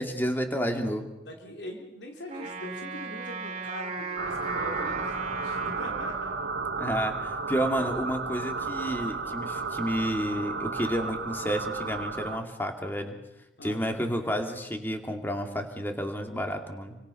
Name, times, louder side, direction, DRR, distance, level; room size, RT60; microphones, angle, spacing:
voice 1, 0.0-1.1 6.7-13.2 13.6-17.0, equal, 10° left, 4 dB, 2.5 m, -30 dB
voice 2, 1.3-6.4 13.6-14.3, left 1 dB, 80° left, 1 dB, 3.5 m, -42 dB
Wind instrument woodwind instrument, 2.3-6.7, right 4 dB, 35° right, 3.4 m, -37 dB
sound 1, 4.2-12.4, right 4 dB, 85° right, 1.7 m, -33 dB
29.0 x 25.0 x 5.6 m, 0.93 s
head